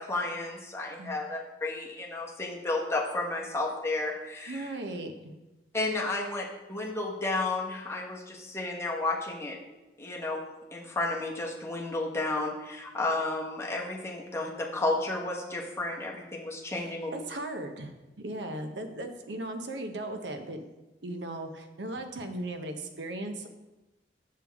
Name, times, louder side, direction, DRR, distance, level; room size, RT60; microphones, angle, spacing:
voice 1, 0.0-4.7 5.7-9.6 10.0-10.4 10.7-17.1, left 2 dB, 15° left, -3 dB, 1.1 m, -32 dB
voice 2, 4.5-5.3 16.8-20.6 21.0-23.5, right 1 dB, 75° right, 6 dB, 0.8 m, -37 dB
7.1 x 6.6 x 3.5 m, 1.1 s
head